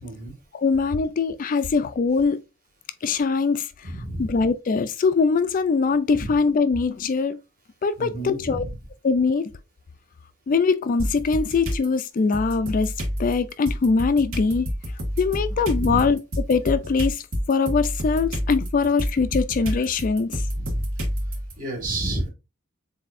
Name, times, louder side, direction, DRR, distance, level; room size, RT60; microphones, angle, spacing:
voice 1, 0.0-0.3 3.8-4.3 6.1-6.3 8.0-8.7 15.7-16.1 20.6-20.8 21.6-22.3, right 1 dB, 40° right, 1.9 m, -30 dB
voice 2, 0.5-2.4 3.0-3.9 4.2-7.4 7.8-8.6 9.0-9.5 10.5-12.9 13.2-14.7 15.2-16.2 16.5-17.2 17.5-20.5, left 4 dB, 40° left, 0.3 m, -22 dB
sound 1, 11.0-11.9 12.3-21.5, equal, 70° right, 1.7 m, -28 dB
7.3 x 2.7 x 2.5 m
head